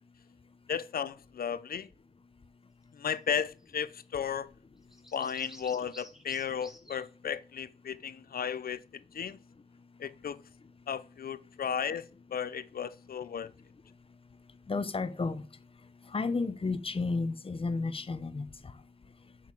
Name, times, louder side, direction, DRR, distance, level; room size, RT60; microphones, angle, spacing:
voice 1, 0.7-1.9 2.9-4.5 5.1-8.8 9.1-9.4 10.0-10.4 10.9-13.5, left 7 dB, 70° left, 0.6 m, -34 dB
sound 1, 3.6-3.7 3.9-4.0 4.9-7.1, equal, 5° right, 1.6 m, -52 dB
voice 2, 14.7-15.4 16.1-18.5, left 3 dB, 35° left, 0.9 m, -32 dB
7.4 x 5.8 x 7.5 m
wide cardioid pair, 110°, 16 cm